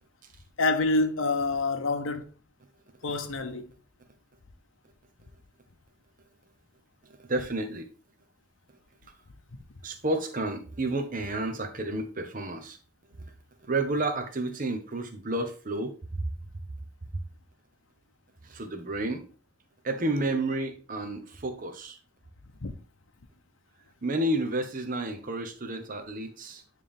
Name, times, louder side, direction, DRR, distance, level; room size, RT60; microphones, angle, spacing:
voice 1, 0.6-2.3 3.0-3.7 22.6-22.7, left 3 dB, 80° left, 0.8 m, -27 dB
voice 2, 7.0-7.9 9.8-12.8 13.1-13.3 13.6-16.2 18.4-19.3 19.8-22.0 24.0-26.6, right 2 dB, 40° right, 1.0 m, -31 dB
9.3 x 3.4 x 3.6 m
head